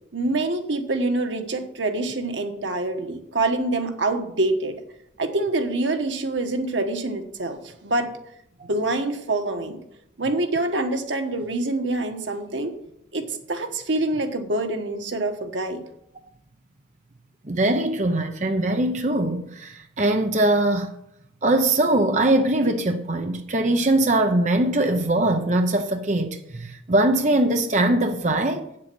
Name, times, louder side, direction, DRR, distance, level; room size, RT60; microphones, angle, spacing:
voice 1, 0.1-4.8 5.2-8.1 8.6-9.8 10.2-12.8 13.1-15.8, right 2 dB, 90° right, 1.3 m, -26 dB
voice 2, 17.4-20.9 21.4-28.7, right 1 dB, 40° right, 0.7 m, -21 dB
8.4 x 7.5 x 6.1 m
head